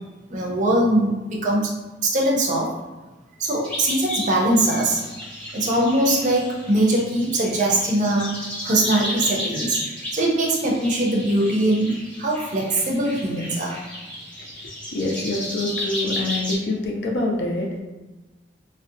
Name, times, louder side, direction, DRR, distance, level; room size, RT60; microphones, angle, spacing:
voice 1, 0.3-1.7 2.0-2.7 3.4-5.0 5.5-8.4 8.6-9.8 10.1-13.8, right 1 dB, 40° right, -2 dB, 0.5 m, -21 dB
sound 1, 3.6-16.5, left 1 dB, 5° left, 0.7 m, -33 dB
voice 2, 14.6-17.8, left 2 dB, 60° left, 0 dB, 0.4 m, -26 dB
2.6 x 2.1 x 2.5 m, 1.1 s
head